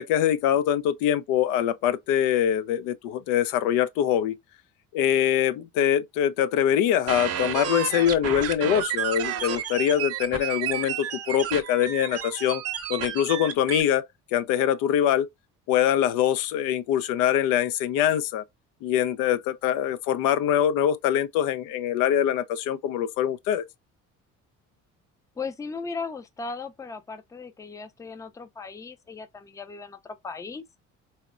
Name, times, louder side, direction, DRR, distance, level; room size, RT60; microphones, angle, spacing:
voice 1, 0.0-4.4 4.9-12.6 12.9-15.3 15.7-18.4 18.8-23.6, left 10 dB, 90° left, 0.5 m, -24 dB
sound 1, 7.1-13.8, right 10 dB, 50° right, 0.6 m, -31 dB
voice 2, 25.4-30.6, left 4 dB, 10° left, 0.4 m, -37 dB
4.1 x 2.0 x 2.3 m
cardioid pair, 100°, 32 cm